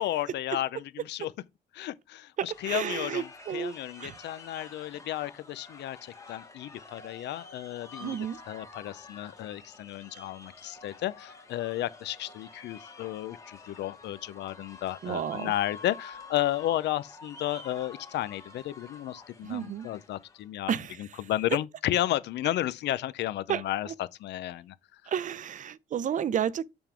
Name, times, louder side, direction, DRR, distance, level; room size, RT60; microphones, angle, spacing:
voice 1, 0.0-1.3 1.7-8.2 8.5-20.7 21.0-24.8, left 14 dB, 85° left, 0.5 m, -33 dB
sound 1, 2.4-20.5, left 3 dB, 20° left, 1.4 m, -49 dB
voice 2, 2.4-3.7 4.0-4.2 8.0-8.4 15.0-15.5 19.4-19.9 20.7-21.2 23.5-23.9 25.1-26.6, right 9 dB, 50° right, 0.5 m, -32 dB
7.0 x 3.7 x 4.4 m
cardioid pair, 115°, 17 cm